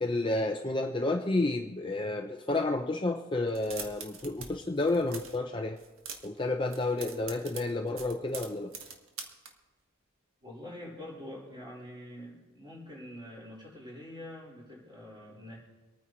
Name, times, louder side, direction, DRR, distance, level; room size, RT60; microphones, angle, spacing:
voice 1, 0.0-5.8 6.2-8.7, left 2 dB, 25° left, 4 dB, 0.5 m, -30 dB
sound 1, 3.5-4.5 4.7-5.4 5.8-6.4 6.7-9.5, right 6 dB, 80° right, 1.6 m, -43 dB
voice 2, 10.4-15.6, left 1 dB, 20° right, -4 dB, 5.1 m, -45 dB
25.5 x 9.6 x 3.1 m, 1.2 s
head